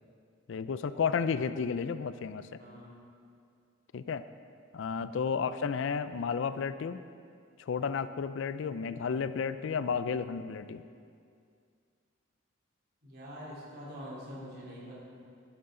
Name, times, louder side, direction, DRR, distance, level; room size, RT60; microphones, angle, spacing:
voice 1, 0.5-2.5 3.9-4.2 4.7-7.0 7.6-10.8, left 6 dB, 65° left, 13 dB, 0.4 m, -32 dB
voice 2, 2.6-2.9 5.3-5.5 13.0-15.0, equal, 55° right, -6 dB, 3.1 m, -45 dB
12.0 x 11.0 x 3.8 m, 2.3 s
head